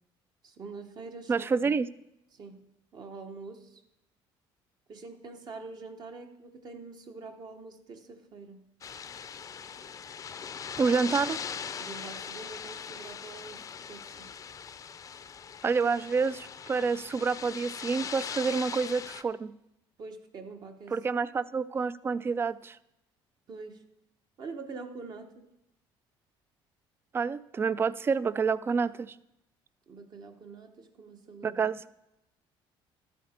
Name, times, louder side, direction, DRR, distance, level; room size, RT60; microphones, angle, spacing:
voice 1, 0.4-1.7 2.3-3.8 4.9-8.6 11.8-14.3 20.0-21.0 23.5-23.8 24.4-25.5 29.9-31.6, right 4 dB, 45° right, 1.1 m, -45 dB
voice 2, 1.3-1.9 10.8-11.4 15.6-19.5 20.9-22.8 27.1-29.2 31.4-31.8, right 5 dB, 25° right, 0.3 m, -28 dB
sound 1, 8.8-19.2, left 7 dB, 35° left, 0.5 m, -40 dB
12.5 x 8.3 x 4.3 m
cardioid pair, 125°, 10 cm